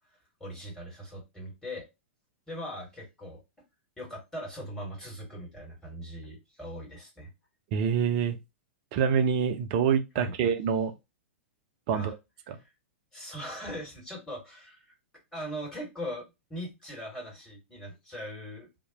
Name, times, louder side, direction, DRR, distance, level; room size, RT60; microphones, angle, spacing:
voice 1, 0.4-1.9 2.5-3.4 4.0-7.3 10.1-10.3 11.9-12.1 12.6-12.7 13.1-14.9 15.3-18.7, equal, 10° left, 1.6 m, -40 dB
voice 2, 7.7-8.4 8.9-10.9 11.9-12.2 12.5-12.6, right 7 dB, 40° right, 0.5 m, -26 dB
2.7 x 2.1 x 2.8 m
figure-of-eight pair, 100°, 7 cm